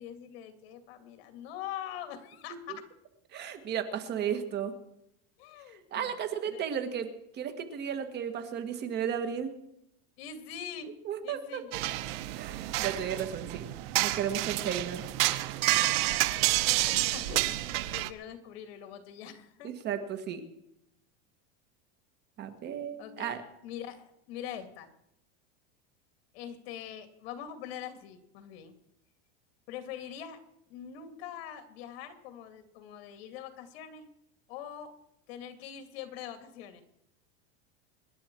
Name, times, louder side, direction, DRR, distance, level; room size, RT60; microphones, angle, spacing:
voice 1, 0.0-2.9 5.4-6.1 6.5-6.6 10.2-10.9 11.2-11.7 14.6-14.8 15.7-16.3 16.6-19.7 23.0-23.4 23.6-24.9 26.3-28.7 29.7-30.4 30.7-34.1 34.5-34.9 35.3-36.8, left 9 dB, 70° left, 8 dB, 2.4 m, -43 dB
voice 2, 3.3-4.7 5.9-7.1 7.3-9.5 11.1-11.6 11.9-12.0 12.4-13.7 14.0-15.0 19.6-20.4 22.4-23.4, right 8 dB, 30° right, 8 dB, 1.8 m, -34 dB
sound 1, 11.7-18.1, right 17 dB, 65° right, 1.1 m, -29 dB
25.5 x 11.0 x 4.6 m, 0.80 s
supercardioid pair, 160°, 32 cm